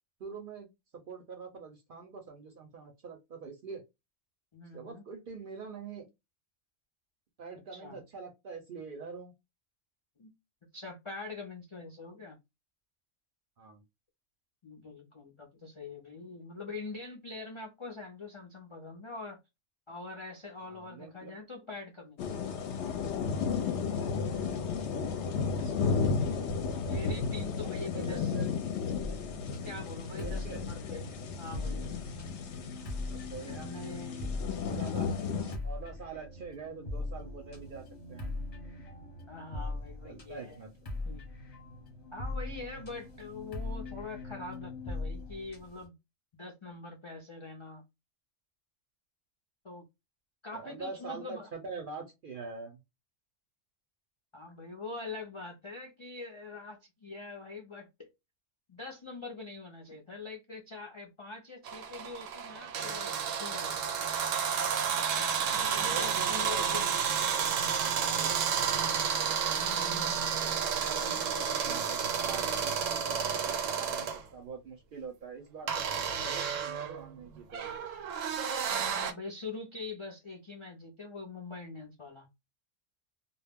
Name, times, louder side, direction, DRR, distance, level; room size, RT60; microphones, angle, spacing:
voice 1, 0.2-0.7 1.1-3.8 4.7-6.1 7.4-9.3 13.6-13.8 20.6-21.4 23.6-24.4 27.6-28.5 30.2-30.7 33.0-33.7 34.6-35.1 35.6-38.3 40.0-40.7 50.5-52.8 65.5-66.8 67.6-68.6 69.2-69.3 70.4-77.8, right 5 dB, 55° right, 0.6 m, -45 dB
voice 2, 4.5-5.0 7.7-8.0 10.2-10.3 10.7-12.4 14.6-19.4 19.9-22.4 25.4-26.5 26.7-28.4 29.6-31.9 33.4-35.6 39.3-40.6 41.1-41.2 42.1-45.9 46.3-47.8 49.6-49.8 50.4-51.5 54.3-58.1 58.7-63.1 63.4-64.0 65.5-66.9 69.6-70.5 70.9-71.2 78.9-82.3, left 3 dB, 50° left, 0.3 m, -44 dB
sound 1, 22.2-35.6, left 5 dB, 70° left, 0.8 m, -33 dB
sound 2, 29.0-45.9, left 2 dB, 35° left, 0.8 m, -41 dB
sound 3, 61.7-74.2 75.7-79.1, right 7 dB, 80° right, 0.9 m, -31 dB
2.2 x 2.0 x 3.4 m
omnidirectional pair, 1.3 m